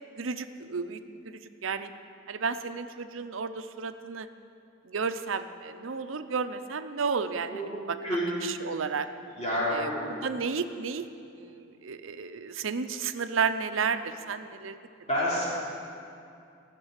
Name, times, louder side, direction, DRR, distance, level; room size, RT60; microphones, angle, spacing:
voice 1, 0.2-1.0 1.2-1.9 2.3-4.3 4.9-8.0 8.4-9.1 9.7-11.1 11.3-14.8, right 5 dB, 90° right, 10 dB, 0.7 m, -32 dB
voice 2, 9.3-10.0 15.1-15.4, equal, 35° left, -8 dB, 3.4 m, -28 dB
16.0 x 6.8 x 8.1 m, 2.5 s
head